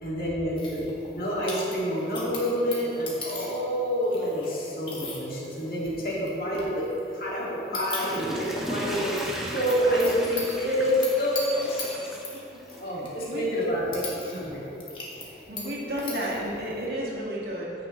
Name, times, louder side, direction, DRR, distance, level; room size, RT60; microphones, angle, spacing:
voice 1, 0.0-6.8 7.1-11.9 12.8-14.6, equal, 55° left, -6 dB, 2.1 m, -28 dB
sound 1, 0.6-16.9, left 2 dB, 30° left, 1.5 m, -41 dB
Water / Toilet flush, 7.7-13.0 13.5-13.6, equal, ahead, 0.8 m, -36 dB
voice 2, 15.5-17.9, equal, 65° right, -6 dB, 2.0 m, -32 dB
14.5 x 6.0 x 3.1 m, 3.0 s
head